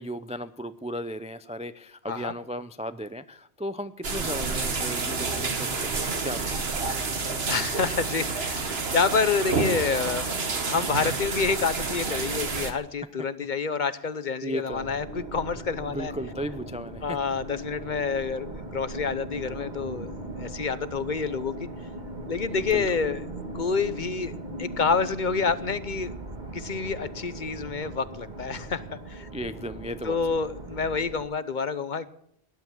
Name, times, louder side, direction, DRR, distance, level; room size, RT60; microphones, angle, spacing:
voice 1, 0.0-6.8 14.4-15.0 15.8-17.2 22.5-22.9 29.3-30.2, equal, 10° right, 12 dB, 0.4 m, -36 dB
sound 1, 4.0-12.7, right 4 dB, 70° right, 1.8 m, -29 dB
voice 2, 7.5-10.3 10.6-15.1 15.3-16.1 17.0-20.1 20.4-21.7 22.3-23.2 23.5-24.3 24.6-26.1 26.5-29.3 30.0-32.1, left 5 dB, 50° left, 14 dB, 0.9 m, -28 dB
sound 2, 14.7-31.2, right 1 dB, 45° right, 1.9 m, -39 dB
18.5 x 11.0 x 7.1 m, 0.73 s
omnidirectional pair, 1.1 m